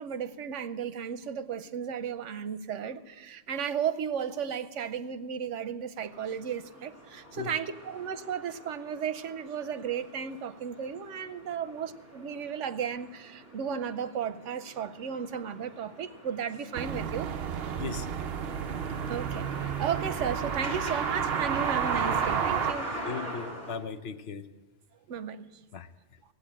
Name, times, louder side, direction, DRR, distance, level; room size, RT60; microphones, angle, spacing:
voice 1, 0.0-17.3 19.1-22.9 25.1-25.5, right 7 dB, 85° right, 1.1 m, -34 dB
sound 1, 6.1-23.8, equal, 45° left, 6.7 m, -42 dB
sound 2, 16.8-22.7, right 8 dB, 60° right, 0.9 m, -31 dB
voice 2, 23.0-24.5 25.7-25.9, left 6 dB, 60° left, 0.9 m, -37 dB
17.0 x 8.4 x 8.6 m
omnidirectional pair, 1.2 m